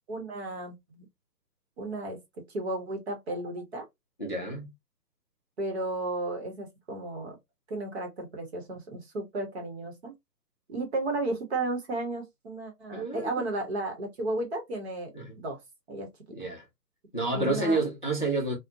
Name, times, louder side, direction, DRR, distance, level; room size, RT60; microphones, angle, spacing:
voice 1, 0.1-1.0 1.8-2.2 2.5-3.9 5.6-7.4 7.7-10.1 10.7-15.1 15.4-15.6 15.9-16.1 17.3-17.8, right 2 dB, 40° right, 0.9 m, -33 dB
voice 2, 4.2-4.7 12.9-13.4 15.1-15.3 16.3-16.6 17.1-18.6, right 2 dB, 35° left, 0.4 m, -29 dB
2.4 x 2.1 x 2.5 m
figure-of-eight pair, 145°, 49 cm